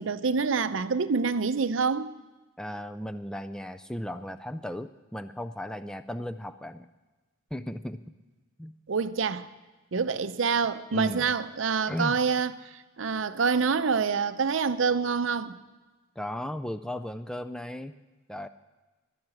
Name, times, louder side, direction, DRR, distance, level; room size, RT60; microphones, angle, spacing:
voice 1, 0.0-2.1 8.9-9.5 9.9-15.6, right 5 dB, 75° right, 0.6 m, -26 dB
voice 2, 2.6-6.9 7.5-8.0 8.6-8.8 10.9-11.3 11.9-12.2 16.2-17.9 18.3-18.5, left 1 dB, 5° left, 0.3 m, -36 dB
11.5 x 10.5 x 7.7 m
head